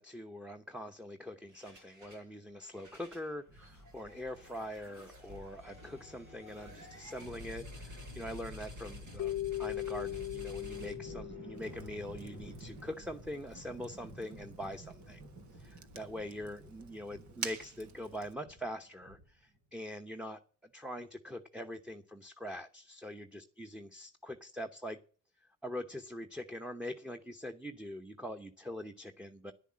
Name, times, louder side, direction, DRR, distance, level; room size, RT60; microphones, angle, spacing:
voice 1, 0.0-15.2 15.5-20.4 20.7-25.0 25.6-29.5, equal, 5° right, 5 dB, 1.0 m, -43 dB
sound 1, 1.5-2.3 2.6-19.6, equal, 90° right, 7.0 m, -50 dB
Keyboard (musical), 9.2-12.4, left 14 dB, 60° left, 0.6 m, -39 dB
Fire, 11.5-18.3, right 7 dB, 70° right, 1.4 m, -49 dB
10.5 x 9.9 x 7.4 m, 0.42 s
cardioid pair, 90°, 30 cm